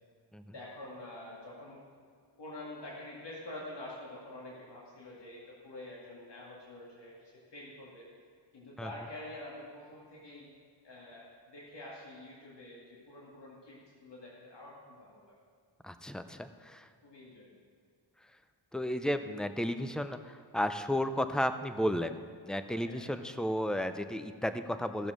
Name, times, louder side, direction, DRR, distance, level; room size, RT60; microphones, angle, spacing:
voice 1, 0.5-1.8 2.4-8.0 8.5-10.5 10.8-15.4 17.0-17.5 22.8-23.0, left 1 dB, 65° left, -4 dB, 2.2 m, -47 dB
voice 2, 15.8-16.9 18.7-22.2 22.5-25.1, equal, ahead, 9 dB, 0.5 m, -33 dB
14.0 x 7.1 x 6.2 m, 2.1 s
wide cardioid pair, 120°, 45 cm